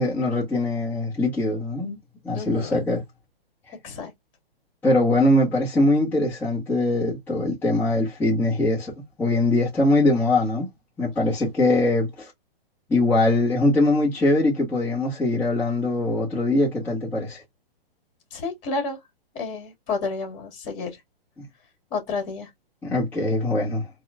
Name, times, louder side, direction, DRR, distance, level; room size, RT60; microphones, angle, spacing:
voice 1, 0.0-2.0 2.2-3.0 4.8-8.9 9.2-10.7 11.0-12.3 12.9-17.4 22.8-23.9, left 2 dB, 5° left, 1.2 m, -22 dB
voice 2, 2.3-2.9 3.8-4.1 18.3-19.0 19.3-21.0 21.9-22.5, left 4 dB, 30° left, 2.0 m, -30 dB
4.1 x 2.4 x 2.6 m
hypercardioid pair, 155°, 30 cm